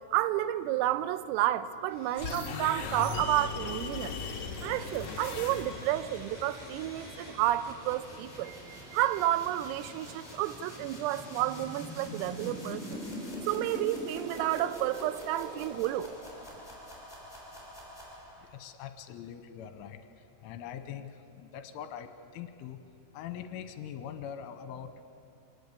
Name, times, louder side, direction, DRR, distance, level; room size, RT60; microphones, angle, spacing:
voice 1, 0.1-4.2 4.6-13.0 13.5-16.1, right 14 dB, 90° right, 3.4 m, -31 dB
Domestic sounds home sounds, 1.8-7.3, equal, 15° right, 6.4 m, -53 dB
sound 1, 2.1-6.0, left 5 dB, 60° left, 2.0 m, -38 dB
sound 2, 4.2-18.5, equal, 5° left, 6.2 m, -44 dB
voice 2, 18.4-20.0 20.4-22.8 23.1-25.0, left 9 dB, 80° left, 3.3 m, -42 dB
24.5 x 19.0 x 8.5 m
omnidirectional pair, 5.9 m